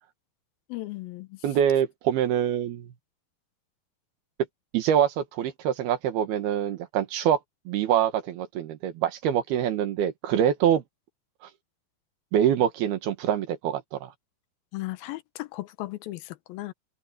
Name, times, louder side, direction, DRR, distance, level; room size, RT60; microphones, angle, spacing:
voice 1, 0.7-1.4 14.7-16.7, left 18 dB, 80° left, 2.6 m, -36 dB
voice 2, 1.4-2.9 4.7-7.4 7.7-10.8 12.3-14.1, right 9 dB, 85° right, 3.5 m, -25 dB
omnidirectional pair, 4.4 m